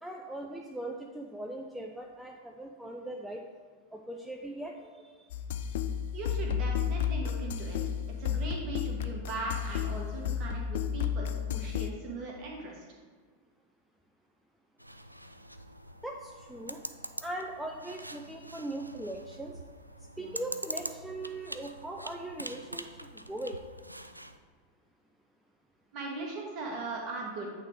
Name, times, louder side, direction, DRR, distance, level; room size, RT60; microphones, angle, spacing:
voice 1, 0.0-3.4 3.9-5.3 16.0-16.8 17.2-19.6 20.2-23.6, right 1 dB, 5° right, 0 dB, 0.5 m, -40 dB
sound 1, 5.3-11.9, left 8 dB, 55° left, 0.4 m, -32 dB
voice 2, 6.1-7.8 8.2-12.8 20.2-20.3 25.9-27.5, right 3 dB, 35° right, -1 dB, 1.6 m, -39 dB
sound 2, 14.8-24.4, right 1 dB, 85° right, 0.3 m, -44 dB
8.4 x 3.7 x 4.7 m, 1.5 s
figure-of-eight pair, 90°, 0 cm